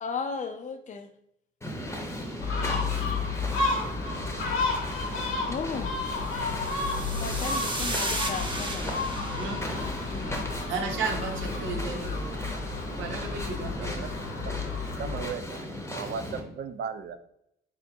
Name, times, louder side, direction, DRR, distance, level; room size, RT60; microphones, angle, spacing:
voice 1, 0.0-1.1 5.5-6.2 7.0-9.2 9.7-10.6, left 5 dB, 40° left, 8 dB, 0.5 m, -36 dB
sound 1, 1.6-16.4, left 1 dB, 15° left, 0.8 m, -37 dB
Gull seagull, 2.4-15.2, left 3 dB, 80° left, 0.8 m, -32 dB
sound 2, 6.3-10.8, right 2 dB, 25° right, 0.7 m, -36 dB
voice 2, 10.6-12.3 12.9-14.0, right 4 dB, 90° right, 2 dB, 0.8 m, -34 dB
voice 3, 15.0-17.2, right 6 dB, 60° right, 10 dB, 0.5 m, -36 dB
3.7 x 2.9 x 3.4 m, 0.76 s
cardioid pair, 90°, 20 cm